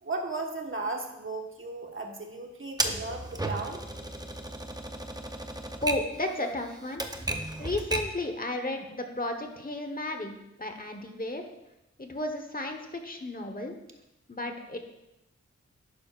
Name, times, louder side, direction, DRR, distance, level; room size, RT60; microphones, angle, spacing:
voice 1, 0.0-3.8, right 3 dB, 45° right, 2 dB, 1.5 m, -35 dB
Typewriter, 2.8-8.2, right 1 dB, 15° right, 0.8 m, -34 dB
voice 2, 5.8-7.0 7.6-10.3 10.6-11.5 12.0-13.7 14.3-14.8, left 1 dB, 30° left, 5 dB, 1.2 m, -33 dB
11.5 x 9.4 x 2.5 m, 0.91 s
wide cardioid pair, 75°, 29 cm